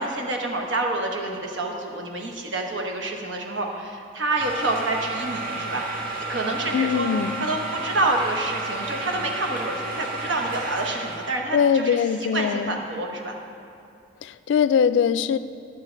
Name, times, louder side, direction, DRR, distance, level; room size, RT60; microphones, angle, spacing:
voice 1, 0.0-5.8 6.3-7.1 7.4-12.0 12.3-13.4, right 2 dB, 85° right, 2 dB, 1.1 m, -27 dB
sound 1, 4.4-11.4, right 2 dB, 55° right, 1.6 m, -32 dB
voice 2, 6.7-7.4 11.5-12.8 14.2-15.4, left 7 dB, 70° left, 14 dB, 0.3 m, -22 dB
11.5 x 7.4 x 4.5 m, 2.5 s
head